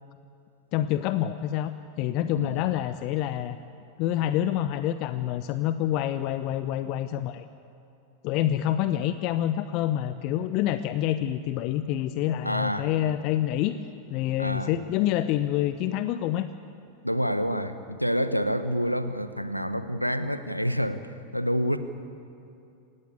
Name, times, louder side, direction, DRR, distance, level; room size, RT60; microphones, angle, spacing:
voice 1, 0.7-1.7 2.0-3.6 4.0-7.5 8.2-13.8 14.1-16.5, left 12 dB, 40° left, 12 dB, 0.8 m, -27 dB
voice 2, 12.4-12.9 14.4-14.7 17.0-21.8, equal, 90° left, 11 dB, 1.1 m, -28 dB
27.0 x 15.5 x 8.6 m, 2.6 s
figure-of-eight pair, 90°, 0 cm